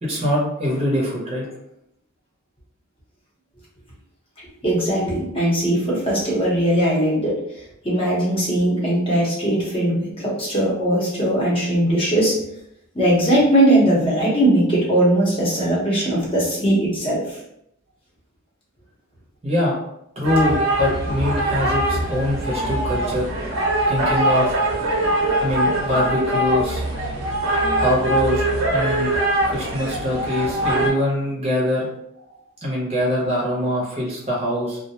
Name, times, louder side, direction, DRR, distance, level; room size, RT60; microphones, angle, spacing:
voice 1, 0.0-1.5 19.4-19.7 20.2-23.3 23.9-24.6 25.4-26.8 27.7-28.4 28.7-29.1 29.5-31.9 32.2-32.3 32.6-34.8, left 1 dB, 30° right, -4 dB, 0.7 m, -23 dB
voice 2, 4.6-7.4 7.8-12.4 12.9-17.4, right 1 dB, 25° left, -5 dB, 0.8 m, -19 dB
sound 1, 20.2-30.9, right 1 dB, 70° right, 0.7 m, -22 dB
2.3 x 2.1 x 2.8 m, 0.77 s
head